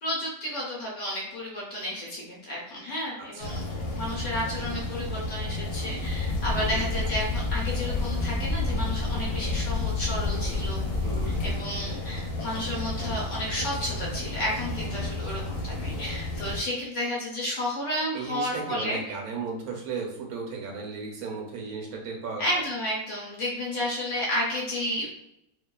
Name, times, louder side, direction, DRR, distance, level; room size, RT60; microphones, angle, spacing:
voice 1, 0.0-3.6 3.9-10.8 11.4-19.0 22.4-25.1, equal, 55° left, -4 dB, 1.0 m, -32 dB
sound 1, 3.4-16.6, left 2 dB, 80° left, 1.1 m, -33 dB
sound 2, 6.0-11.6, left 4 dB, 55° right, 0.7 m, -30 dB
voice 2, 6.5-6.9 11.0-11.5 18.1-22.6, right 4 dB, 75° right, 1 dB, 1.0 m, -35 dB
2.8 x 2.2 x 2.2 m, 0.84 s
omnidirectional pair, 1.7 m